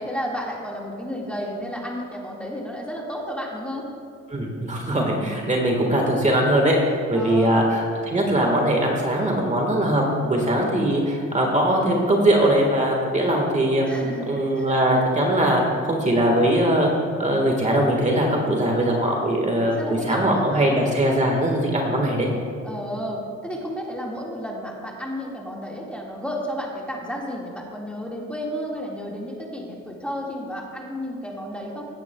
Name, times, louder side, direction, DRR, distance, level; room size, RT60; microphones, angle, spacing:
voice 1, 0.0-3.9 4.9-5.1 7.1-7.7 13.9-14.7 19.6-20.8 22.6-31.8, equal, 5° left, -3 dB, 1.9 m, -32 dB
voice 2, 4.3-6.8 7.1-13.8 14.3-16.9 17.2-22.3, right 1 dB, 25° right, 0 dB, 1.6 m, -21 dB
16.5 x 9.6 x 2.3 m, 2.4 s
cardioid pair, 90°, 30 cm